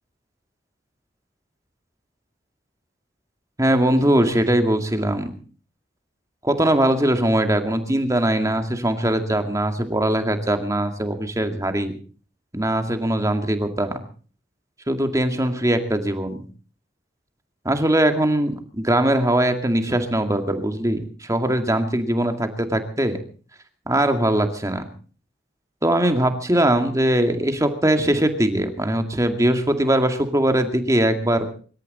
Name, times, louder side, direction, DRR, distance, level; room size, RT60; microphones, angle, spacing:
voice 1, 3.6-5.3 6.4-12.0 12.5-14.0 14.9-16.4 17.6-23.2 23.9-24.9 25.8-31.5, right 1 dB, 20° right, 6 dB, 2.2 m, -21 dB
25.5 x 13.5 x 4.2 m, 0.40 s
head